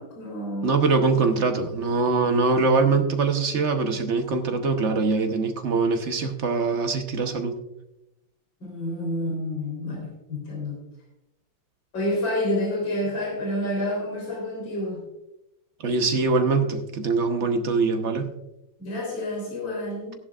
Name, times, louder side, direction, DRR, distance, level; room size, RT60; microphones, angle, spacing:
voice 1, 0.0-0.7 8.6-10.7 11.9-15.0 18.8-20.2, left 1 dB, 60° left, -2 dB, 4.4 m, -29 dB
voice 2, 0.6-7.6 15.8-18.3, right 4 dB, 50° right, 6 dB, 0.9 m, -23 dB
16.0 x 11.0 x 2.4 m, 0.90 s
omnidirectional pair, 2.3 m